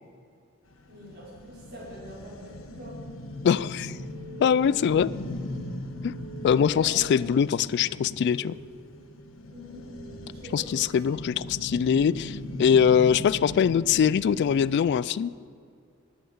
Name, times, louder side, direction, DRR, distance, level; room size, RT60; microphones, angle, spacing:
sound 1, 0.7-14.7, left 1 dB, 75° left, 1.2 m, -39 dB
voice 1, 0.9-3.0 6.6-6.9 9.5-9.8 10.3-10.9, equal, 55° right, -4 dB, 4.5 m, -44 dB
sound 2, 3.2-12.4, right 2 dB, 15° right, 3.7 m, -50 dB
voice 2, 3.4-3.9 4.4-5.1 6.0-6.1 6.4-8.5 10.5-15.3, left 7 dB, 55° left, 19 dB, 0.3 m, -22 dB
12.5 x 10.0 x 7.9 m, 2.4 s
head